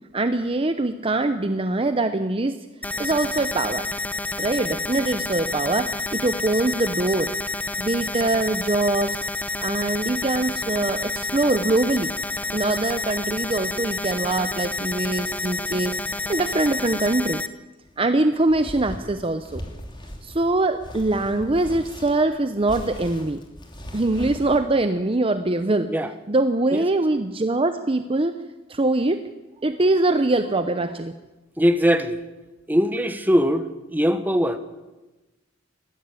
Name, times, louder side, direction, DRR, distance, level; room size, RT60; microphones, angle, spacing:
voice 1, 0.1-2.6 3.0-3.9 4.4-7.3 7.8-9.2 9.6-12.1 12.5-16.0 16.3-17.4 18.0-19.6 20.2-23.4 23.9-25.9 26.3-28.4 28.7-29.2 29.6-31.1, right 2 dB, 30° right, 9 dB, 0.8 m, -23 dB
sound 1, 2.8-17.5, left 2 dB, 10° left, 0.9 m, -29 dB
sound 2, 17.9-24.6, equal, 25° left, 3.0 m, -39 dB
voice 2, 31.6-32.2 32.7-34.6, equal, 10° right, 9 dB, 1.3 m, -21 dB
19.5 x 15.0 x 9.1 m, 1.1 s
head